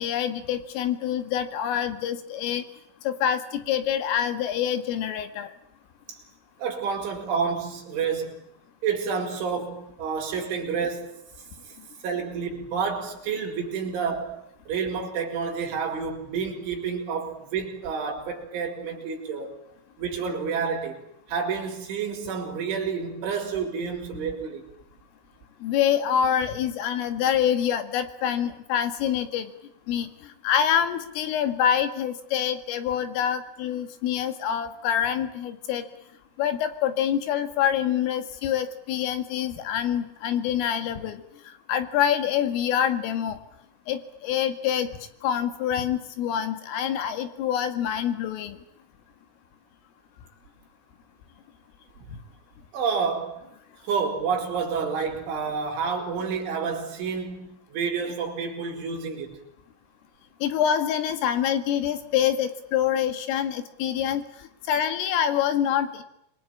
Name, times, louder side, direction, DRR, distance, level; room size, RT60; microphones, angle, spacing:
voice 1, 0.0-2.6 3.0-5.5 25.6-29.5 29.9-30.1 30.4-35.9 36.4-41.2 41.7-43.4 43.9-44.9 45.2-48.6 60.4-64.2 64.7-66.0, left 9 dB, 75° left, 4.5 m, -26 dB
voice 2, 6.6-8.4 8.8-11.2 12.0-14.4 14.7-19.6 20.0-21.0 21.3-24.6 52.7-53.4 53.8-59.4, right 5 dB, 65° right, 6.8 m, -29 dB
27.0 x 23.5 x 8.8 m
omnidirectional pair, 6.0 m